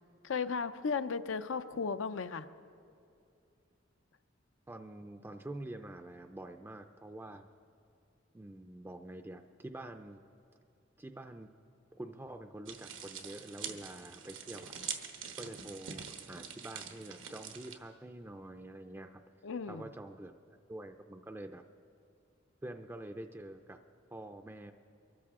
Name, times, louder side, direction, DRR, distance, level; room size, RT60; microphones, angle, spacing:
voice 1, 0.2-2.5 19.4-19.9, left 5 dB, 85° left, 11 dB, 0.5 m, -35 dB
voice 2, 4.7-7.5 8.3-10.2 11.0-11.5 11.9-14.7 15.4-19.2 19.7-21.6 22.6-23.8 24.1-24.7, right 1 dB, 10° right, 6 dB, 0.4 m, -46 dB
sound 1, 12.7-17.8, right 7 dB, 85° right, 1.1 m, -44 dB
23.5 x 13.5 x 3.6 m, 2.5 s
head